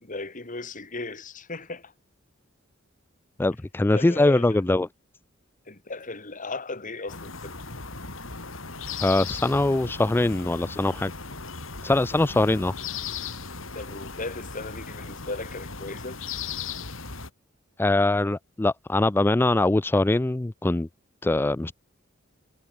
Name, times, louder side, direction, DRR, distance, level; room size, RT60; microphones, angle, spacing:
voice 1, 0.0-1.9 3.9-4.6 5.7-7.6 13.7-16.2, left 3 dB, 40° left, 2.8 m, -36 dB
voice 2, 3.4-4.9 9.0-11.1 11.8-12.7 17.8-20.9 21.2-21.7, left 2 dB, 10° left, 0.3 m, -22 dB
sound 1, 7.1-17.3, left 5 dB, 70° left, 4.6 m, -37 dB
head